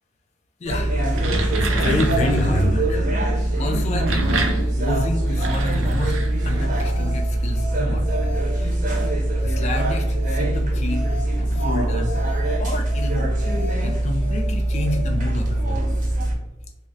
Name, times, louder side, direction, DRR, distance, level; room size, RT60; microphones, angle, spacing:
voice 1, 0.6-1.0 1.6-3.1 3.6-4.4 4.8-6.2 6.4-8.7 9.1-9.2 9.4-11.1 11.4-12.1 12.6-13.4 13.8-15.9, left 1 dB, 35° left, 3 dB, 0.3 m, -28 dB
sound 1, 0.7-16.4, right 1 dB, 40° right, 0.7 m, -22 dB
sound 2, 0.9-2.6 3.7-6.8, right 2 dB, 85° right, 0.5 m, -28 dB
sound 3, 6.7-7.2 7.6-7.7 8.1-8.6 8.9-9.1 9.4-9.9 10.2-10.4 10.7-11.2 11.6-11.7 12.1-12.6 12.9-13.1 13.4-13.9 14.2-14.4 14.7-15.0, equal, 10° left, 0.6 m, -37 dB
3.6 x 2.0 x 2.6 m, 0.99 s
head